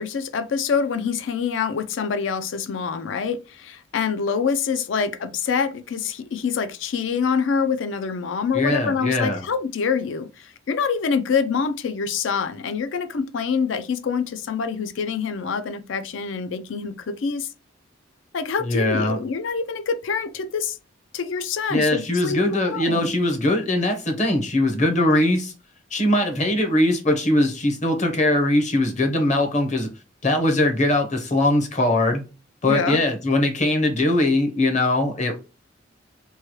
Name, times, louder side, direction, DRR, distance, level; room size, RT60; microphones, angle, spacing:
voice 1, 0.0-17.5 18.3-20.8 21.1-23.1 32.6-33.0, left 6 dB, 75° left, 0.4 m, -26 dB
voice 2, 8.5-9.4 18.6-19.2 21.7-25.5 25.9-29.9 30.2-32.2 32.6-35.4, left 1 dB, 40° left, 0.8 m, -21 dB
3.1 x 2.3 x 2.9 m
head